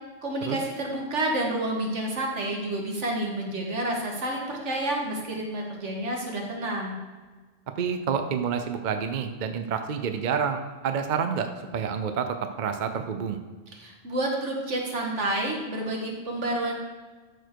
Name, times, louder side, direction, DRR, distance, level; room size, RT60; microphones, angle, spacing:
voice 1, 0.2-6.9 13.7-16.7, right 1 dB, 80° right, 0 dB, 1.9 m, -29 dB
voice 2, 7.8-13.4, right 6 dB, 50° right, 7 dB, 0.7 m, -28 dB
12.5 x 4.5 x 4.6 m, 1.4 s
omnidirectional pair, 1.2 m